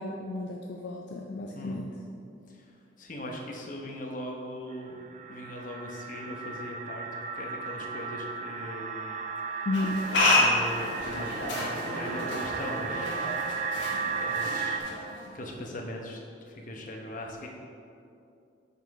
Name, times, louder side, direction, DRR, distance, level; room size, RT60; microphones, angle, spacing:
voice 1, 0.0-1.9 9.7-10.1, left 2 dB, 60° left, 0 dB, 0.4 m, -33 dB
voice 2, 2.5-7.1 7.4-9.2 9.5-9.7 10.4-17.5, left 1 dB, 45° left, 0 dB, 0.9 m, -40 dB
Ambient Drone Level, 4.7-14.8, right 5 dB, 40° right, 0.4 m, -35 dB
sound 1, 9.7-15.4, left 2 dB, 75° left, 1.4 m, -29 dB
5.8 x 5.7 x 4.7 m, 2.6 s
head